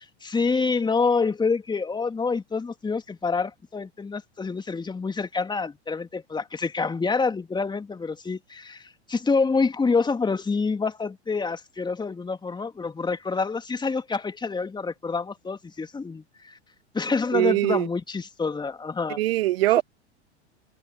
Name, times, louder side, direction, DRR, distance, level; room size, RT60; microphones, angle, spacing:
voice 1, 0.2-16.6 16.9-19.2, left 4 dB, 15° left, 2.7 m, -27 dB
voice 2, 17.3-17.9 19.1-19.8, right 16 dB, 60° right, 0.9 m, -22 dB
figure-of-eight pair, 85°, 34 cm